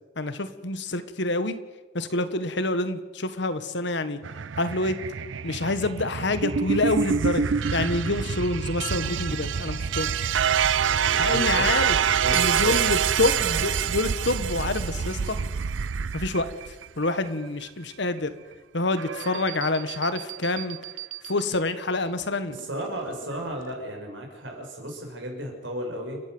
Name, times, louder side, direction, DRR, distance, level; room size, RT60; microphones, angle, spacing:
voice 1, 0.2-1.6 1.9-4.2 4.6-5.0 5.4-7.5 7.7-10.3 11.2-11.9 12.3-15.4 16.1-16.5 17.0-18.3 18.7-20.8 21.3-22.6, left 2 dB, 70° left, 11 dB, 1.5 m, -27 dB
sound 1, 4.2-17.3 19.0-21.4 22.6-23.1, right 7 dB, 90° right, 0.6 m, -26 dB
voice 2, 11.0-12.8 13.4-13.7 22.5-26.2, equal, 75° right, 1 dB, 6.4 m, -35 dB
29.5 x 11.5 x 8.0 m, 1.2 s
head